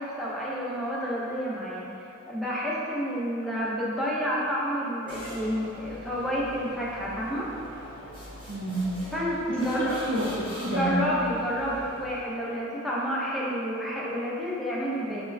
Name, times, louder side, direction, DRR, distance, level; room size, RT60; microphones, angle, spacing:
voice 1, 0.0-1.9 2.3-7.5 9.1-10.0 10.6-15.2, equal, ahead, -7 dB, 0.8 m, -29 dB
sound 1, 5.1-12.5, equal, 15° left, 1.2 m, -43 dB
voice 2, 8.5-9.0 9.5-11.1, right 1 dB, 40° right, -5 dB, 0.7 m, -29 dB
4.4 x 2.2 x 2.7 m, 2.7 s
cardioid pair, 40°, 31 cm